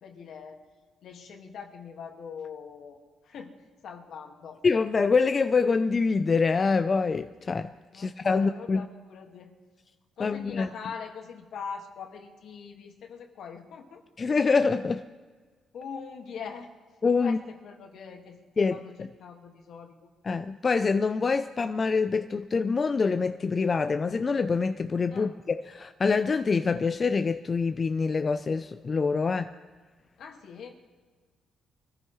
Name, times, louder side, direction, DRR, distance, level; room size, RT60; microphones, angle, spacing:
voice 1, 0.0-0.7 1.0-3.6 3.8-4.6 7.9-9.5 10.2-14.0 15.7-16.7 17.2-20.1 25.1-25.4 30.2-30.7, left 6 dB, 70° left, 1.8 m, -42 dB
voice 2, 4.6-8.9 10.2-10.7 14.2-15.0 17.0-17.4 18.6-19.1 20.2-29.5, left 4 dB, 35° left, 0.5 m, -25 dB
24.0 x 14.5 x 3.1 m
cardioid pair, 90°, 0 cm